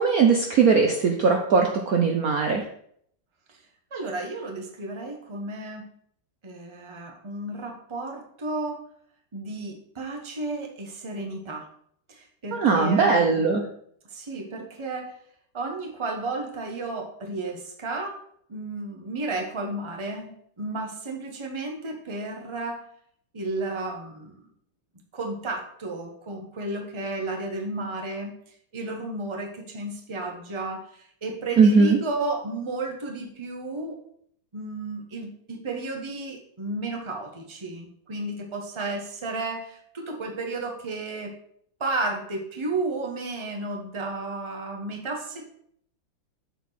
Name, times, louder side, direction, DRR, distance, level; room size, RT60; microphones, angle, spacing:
voice 1, 0.0-2.6 12.5-13.6 31.6-32.0, right 5 dB, 60° right, 3 dB, 1.0 m, -19 dB
voice 2, 3.9-5.9 6.4-8.8 9.3-11.7 12.1-13.4 14.1-15.1 15.5-18.2 18.5-22.8 23.3-24.4 25.1-28.4 28.7-34.0 34.5-41.3 41.8-45.5, right 2 dB, 20° right, 2 dB, 1.0 m, -33 dB
7.2 x 4.4 x 5.8 m, 0.65 s
omnidirectional pair, 2.2 m